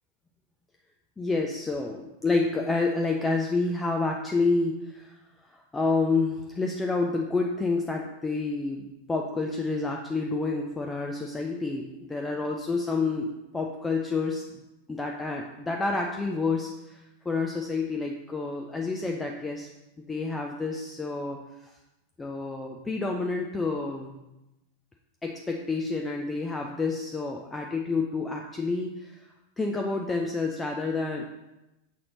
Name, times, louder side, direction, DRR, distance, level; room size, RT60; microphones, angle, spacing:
voice 1, 1.2-5.2 5.5-14.4 14.9-19.7 20.1-21.4 21.6-21.7 22.2-24.2 25.2-29.3 29.6-31.2, left 3 dB, 10° left, 1 dB, 0.5 m, -29 dB
6.4 x 4.2 x 3.9 m, 0.96 s
figure-of-eight pair, 90°, 0 cm